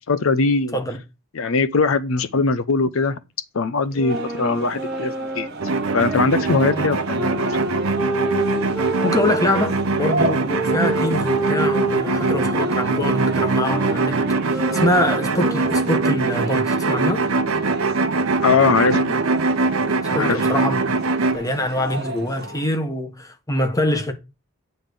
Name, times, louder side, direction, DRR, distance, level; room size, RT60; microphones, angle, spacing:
voice 1, 0.1-0.8 1.3-3.2 3.5-5.5 5.9-7.6 18.4-19.2 20.2-20.4, left 4 dB, 70° left, 0.6 m, -21 dB
sound 1, 3.9-9.7 10.5-16.1, right 2 dB, 5° right, 0.9 m, -28 dB
Quiet Bar, 4.1-22.7, right 2 dB, 50° right, 1.2 m, -33 dB
sound 2, 5.6-21.4, right 3 dB, 80° right, 1.0 m, -22 dB
voice 2, 9.0-14.2 14.5-17.3 20.1-20.9 21.3-24.1, left 1 dB, 15° left, 1.3 m, -24 dB
9.0 x 3.8 x 6.6 m
head